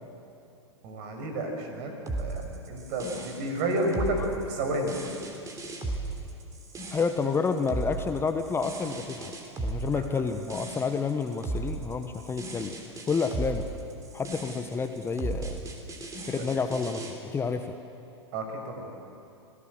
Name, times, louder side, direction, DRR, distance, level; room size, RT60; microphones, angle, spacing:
voice 1, 0.8-1.9 2.2-5.0 9.9-10.0 16.4-16.5 18.3-18.9, right 1 dB, 45° right, 3 dB, 5.8 m, -31 dB
sound 1, 2.1-17.1, right 2 dB, 20° right, 3.4 m, -36 dB
voice 2, 6.9-9.3 9.6-12.7 13.1-13.6 14.1-15.6 16.3-17.0 17.3-17.7, left 5 dB, 15° left, 7 dB, 1.1 m, -29 dB
25.5 x 17.5 x 7.9 m, 2.8 s
figure-of-eight pair, 95°, 15 cm